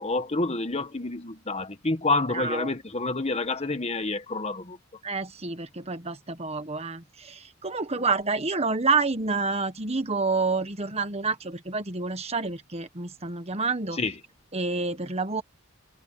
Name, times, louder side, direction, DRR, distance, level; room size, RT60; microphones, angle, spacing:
voice 1, 0.0-4.8 14.0-14.1, left 2 dB, 30° left, 1.4 m, -28 dB
voice 2, 2.3-2.7 5.0-14.0 14.5-15.4, right 4 dB, 30° right, 1.4 m, -28 dB
head